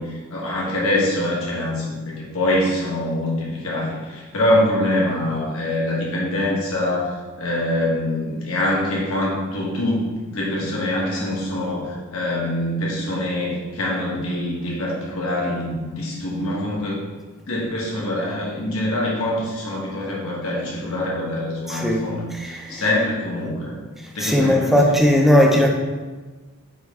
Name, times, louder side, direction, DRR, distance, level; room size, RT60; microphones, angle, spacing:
voice 1, 0.0-17.0 17.5-23.8 24.1-25.0, left 1 dB, 70° left, -4 dB, 1.5 m, -24 dB
voice 2, 21.7-22.1 22.3-22.8 24.2-25.7, equal, ahead, -1 dB, 0.6 m, -17 dB
9.3 x 3.2 x 3.6 m, 1.3 s
head